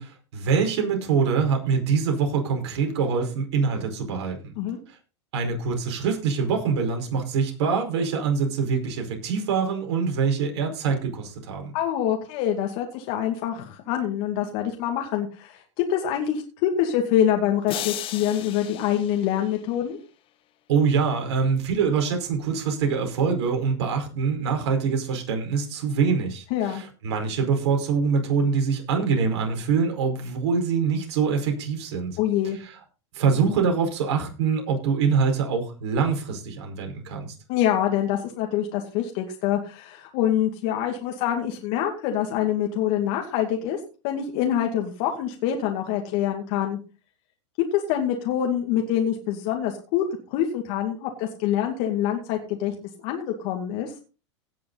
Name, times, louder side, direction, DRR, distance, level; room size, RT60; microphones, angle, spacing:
voice 1, 0.0-4.5 5.3-11.7 20.7-32.2 32.6-32.7 33.1-37.3, right 5 dB, 65° right, 3 dB, 5.0 m, -24 dB
voice 2, 11.7-20.0 26.5-26.8 32.2-32.6 37.5-46.8 47.7-50.0 50.3-52.7 53.0-53.9, left 10 dB, 55° left, 2 dB, 2.4 m, -25 dB
sound 1, 17.7-20.0, left 12 dB, 35° left, 1.3 m, -35 dB
17.5 x 6.8 x 4.0 m, 0.34 s
hypercardioid pair, 115°, 15 cm